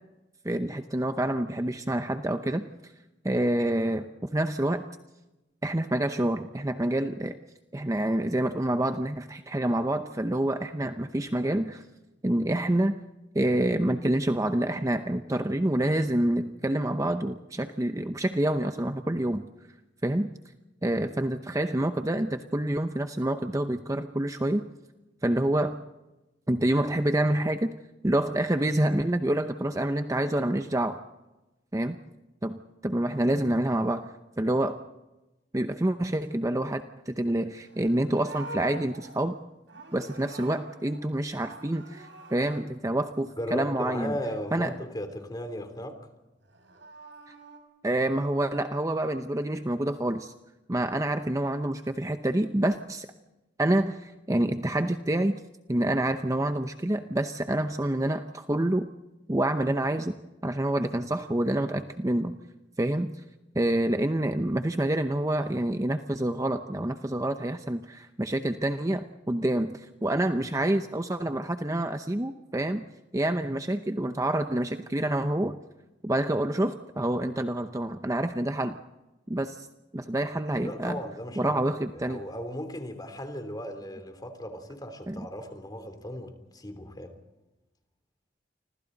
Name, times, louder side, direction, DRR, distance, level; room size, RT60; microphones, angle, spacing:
voice 1, 0.4-2.9 3.2-4.8 5.6-7.4 7.7-11.8 12.2-13.0 13.3-19.5 20.0-20.3 20.8-24.6 25.2-25.8 26.5-27.7 28.0-31.0 31.7-32.0 32.4-34.1 34.4-34.8 35.5-39.4 39.9-44.1 44.5-44.7 47.8-50.3 50.7-53.1 53.6-55.4 55.7-58.9 59.3-60.1 60.4-62.4 62.8-63.1 63.5-72.9 73.1-75.5 76.0-78.8 79.3-79.7 79.9-81.0 81.4-82.2 85.1-85.3, right 1 dB, 20° right, 7 dB, 0.7 m, -27 dB
Livestock farm animals working animals, 37.6-41.0 41.3-42.6 46.4-47.6, right 2 dB, 85° right, 5.3 m, -45 dB
voice 2, 43.4-46.0 80.6-81.6 81.9-87.2, equal, 25° left, 7 dB, 3.4 m, -36 dB
29.5 x 25.5 x 4.0 m, 1.0 s
head